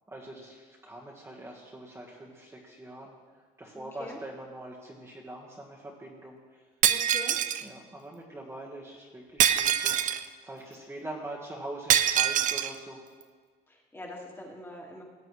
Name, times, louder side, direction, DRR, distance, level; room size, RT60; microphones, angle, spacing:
voice 1, 0.1-3.1 3.6-6.7 7.6-10.1 10.4-13.0, right 1 dB, 15° right, -3 dB, 1.5 m, -43 dB
voice 2, 3.7-4.2 6.9-7.4 13.7-15.0, left 1 dB, 15° left, -2 dB, 1.9 m, -43 dB
Shatter, 6.8-7.6 9.4-10.3 11.9-12.7, right 10 dB, 50° right, 0.4 m, -24 dB
17.0 x 7.7 x 3.2 m, 1.5 s
cardioid pair, 110°, 17 cm